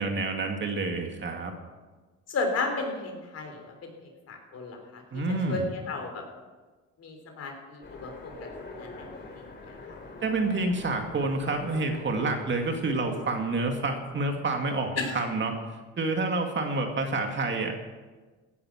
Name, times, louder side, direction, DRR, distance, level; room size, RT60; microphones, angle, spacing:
voice 1, 0.0-1.5 5.1-5.7 10.2-15.5 16.0-17.8, right 3 dB, 40° right, 3 dB, 2.3 m, -28 dB
voice 2, 2.3-6.2 7.0-8.3 8.7-9.1 9.3-10.0 15.0-15.2, left 3 dB, 55° left, 4 dB, 3.6 m, -34 dB
Train, 7.8-14.7, left 3 dB, 35° left, 3.5 m, -45 dB
17.0 x 9.9 x 6.0 m, 1.3 s
cardioid pair, 100°, 30 cm